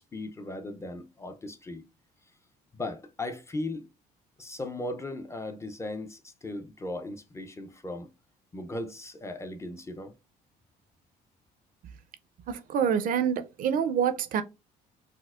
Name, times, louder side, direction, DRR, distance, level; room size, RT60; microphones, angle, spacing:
voice 1, 0.0-1.8 2.7-3.8 4.4-8.1 8.5-10.1, left 2 dB, 15° left, 0.4 m, -37 dB
voice 2, 12.5-14.4, right 8 dB, 55° right, 0.4 m, -26 dB
4.2 x 2.0 x 2.3 m
cardioid pair, 110°, 17 cm